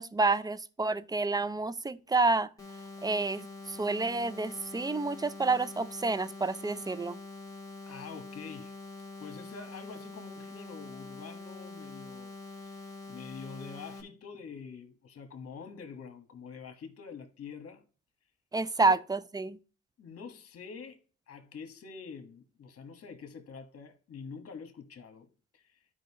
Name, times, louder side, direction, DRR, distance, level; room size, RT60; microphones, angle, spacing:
voice 1, 0.0-2.5 3.0-7.2 18.5-19.6, right 3 dB, 15° right, 0.3 m, -29 dB
sound 1, 2.6-14.0, left 2 dB, 10° left, 1.9 m, -45 dB
voice 2, 7.9-8.8 9.2-17.8 18.8-19.0 20.0-25.9, left 5 dB, 50° left, 1.4 m, -46 dB
11.5 x 5.1 x 2.9 m
cardioid pair, 90°, 30 cm